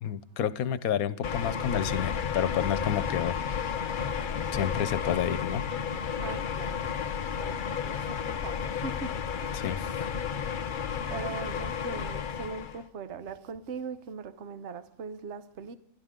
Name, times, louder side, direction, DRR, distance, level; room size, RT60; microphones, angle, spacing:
voice 1, 0.0-3.6 4.3-5.7 9.5-10.0, left 9 dB, 80° left, 1.2 m, -30 dB
sound 1, 1.2-12.8, left 7 dB, 45° left, 0.7 m, -32 dB
voice 2, 6.2-6.9 7.2-9.1 9.4-9.6 11.1-15.8, right 5 dB, 55° right, 1.1 m, -40 dB
27.5 x 12.0 x 3.7 m
omnidirectional pair, 1.5 m